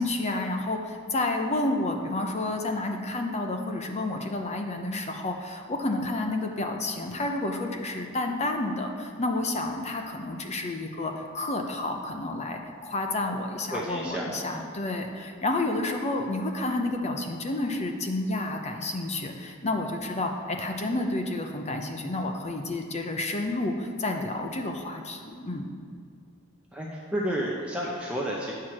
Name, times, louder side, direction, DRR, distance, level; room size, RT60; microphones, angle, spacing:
voice 1, 0.0-25.7, left 2 dB, 30° left, 4 dB, 0.7 m, -30 dB
voice 2, 13.7-14.6 26.7-28.5, equal, 5° right, -4 dB, 0.7 m, -31 dB
9.3 x 4.7 x 5.9 m, 2.3 s
head